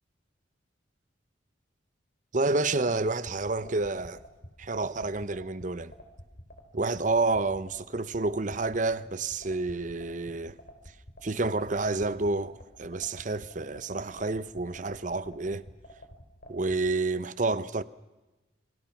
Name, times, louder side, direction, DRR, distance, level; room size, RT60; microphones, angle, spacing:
voice 1, 2.3-4.2 4.6-5.9 6.7-10.6 11.2-15.7 16.5-17.8, right 3 dB, 45° right, 0.8 m, -29 dB
sound 1, 3.0-16.8, equal, 50° left, 4.0 m, -48 dB
27.5 x 25.0 x 6.0 m
head